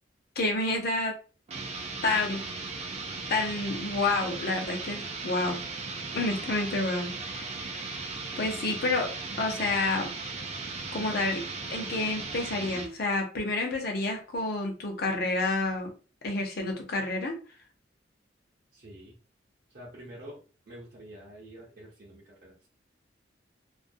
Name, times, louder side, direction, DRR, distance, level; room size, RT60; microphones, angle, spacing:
voice 1, 0.4-1.2 2.0-2.4 3.3-5.6 6.1-9.1 9.4-10.1 10.9-11.4 11.7-15.9 16.2-17.4, left 2 dB, 60° left, 3 dB, 0.7 m, -29 dB
sound 1, 1.5-12.9, right 3 dB, 35° right, 0.4 m, -37 dB
voice 2, 18.7-19.1 19.7-22.7, right 1 dB, 55° right, -6 dB, 0.7 m, -47 dB
2.4 x 2.0 x 2.6 m, 0.36 s
head